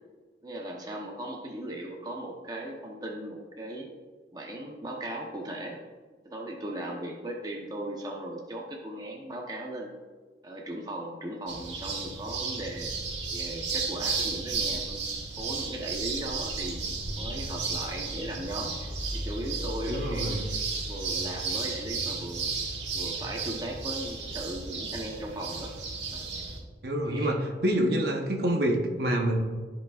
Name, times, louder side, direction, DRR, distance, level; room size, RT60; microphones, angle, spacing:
voice 1, 0.4-3.9 4.3-5.8 6.2-9.9 10.4-12.9 13.3-15.0 15.4-16.8 17.2-18.8 19.1-20.4 20.9-22.5 22.9-25.7 26.1-26.4 27.0-27.4, right 1 dB, 20° right, 0 dB, 0.8 m, -37 dB
sound 1, 11.5-26.6, right 4 dB, 85° right, 1.7 m, -33 dB
voice 2, 19.9-20.4 26.8-29.4, right 1 dB, 55° right, 2 dB, 0.9 m, -27 dB
14.0 x 5.2 x 2.4 m, 1.4 s
head